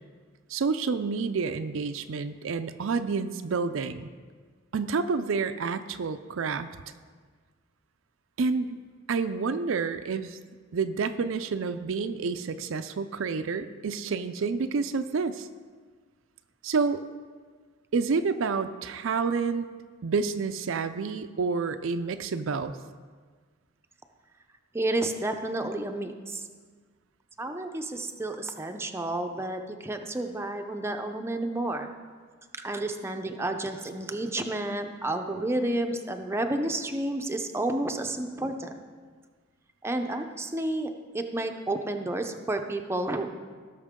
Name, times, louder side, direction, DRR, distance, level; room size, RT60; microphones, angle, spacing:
voice 1, 0.5-4.1 4.7-6.7 8.4-8.7 9.1-10.4 10.7-15.5 16.6-17.0 17.9-19.7 20.0-22.8, right 4 dB, 70° right, 10 dB, 0.5 m, -29 dB
voice 2, 24.7-26.5 27.4-31.9 32.6-38.8 39.8-43.3, right 1 dB, 15° right, 5 dB, 0.6 m, -31 dB
17.5 x 6.5 x 3.7 m, 1.6 s
head